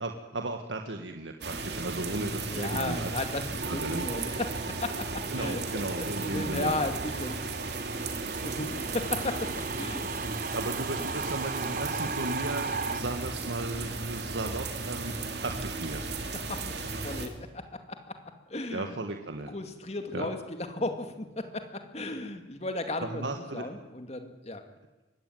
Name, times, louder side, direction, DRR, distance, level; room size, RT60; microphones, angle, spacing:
voice 1, 0.0-3.1 3.7-4.1 5.3-6.7 10.5-15.1 15.4-16.3 18.7-19.5 20.1-20.3 23.0-23.6, right 2 dB, 90° right, 4 dB, 1.7 m, -35 dB
sound 1, 1.4-17.3, right 3 dB, 65° right, 2.9 m, -36 dB
voice 2, 2.4-7.4 8.4-10.1 12.9-13.1 16.3-19.0 19.5-24.6, left 2 dB, 35° left, 7 dB, 2.3 m, -35 dB
sound 2, 3.6-13.0, right 4 dB, 50° right, 1.2 m, -37 dB
23.5 x 18.0 x 9.3 m, 1.1 s
head